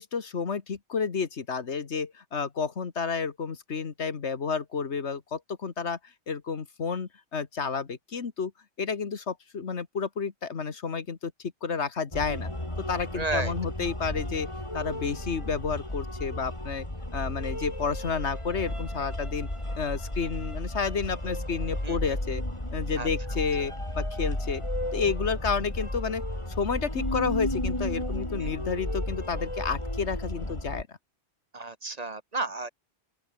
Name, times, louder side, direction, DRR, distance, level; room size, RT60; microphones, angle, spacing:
voice 1, 0.0-6.0 6.3-8.5 8.8-11.3 11.6-12.5 12.9-16.9 17.1-19.5 19.8-22.4 22.7-24.6 24.9-26.2 26.5-30.9, left 5 dB, 75° left, 1.9 m, -31 dB
sound 1, 12.1-30.8, left 1 dB, 25° left, 4.5 m, -33 dB
voice 2, 13.1-13.5 21.8-22.0 23.0-23.1 23.6-23.7 28.4-28.5 31.5-32.7, right 3 dB, 35° right, 1.2 m, -32 dB
open air
omnidirectional pair, 1.2 m